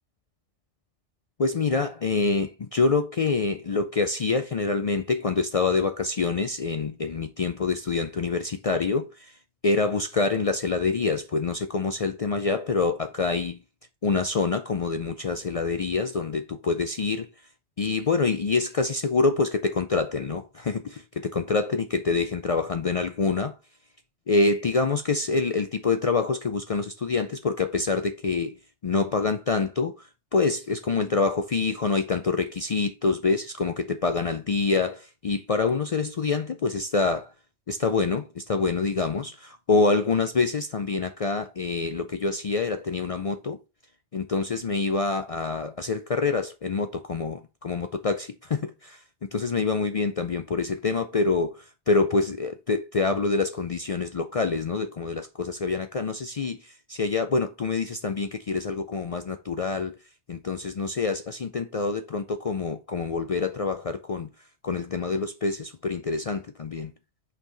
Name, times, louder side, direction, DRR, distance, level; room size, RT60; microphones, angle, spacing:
voice 1, 1.4-13.6 14.0-17.5 17.8-23.6 24.3-37.3 37.7-43.6 44.1-49.0 49.3-66.9, left 4 dB, 55° left, 0.4 m, -26 dB
5.9 x 4.6 x 3.9 m
omnidirectional pair, 1.2 m